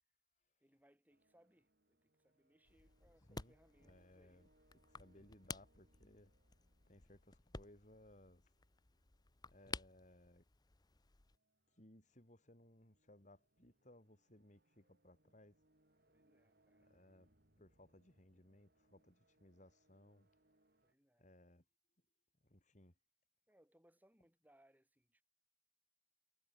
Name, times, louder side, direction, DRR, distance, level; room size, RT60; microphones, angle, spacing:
voice 1, 0.6-4.5 16.1-16.9 20.8-21.3 23.5-25.2, equal, 10° right, 7.9 m, -72 dB
sound 1, 1.1-20.9, right 1 dB, 60° right, 4.7 m, -78 dB
sound 2, 2.6-11.4, left 4 dB, 20° left, 0.7 m, -54 dB
voice 2, 3.3-4.5 4.9-6.3 6.9-8.5 9.5-10.5 11.7-15.6 16.8-20.3 21.2-21.6 22.4-22.9, left 1 dB, 40° left, 5.3 m, -64 dB
head